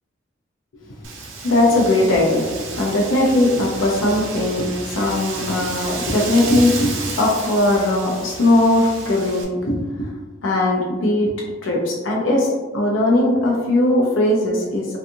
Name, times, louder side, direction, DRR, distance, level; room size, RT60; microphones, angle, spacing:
Wind, 1.0-9.4, right 4 dB, 80° right, 0.5 m, -32 dB
voice 1, 1.4-10.1 10.4-11.3 11.6-12.5 12.7-15.0, left 1 dB, 80° left, -2 dB, 0.5 m, -19 dB
2.6 x 2.4 x 2.6 m, 1.3 s
head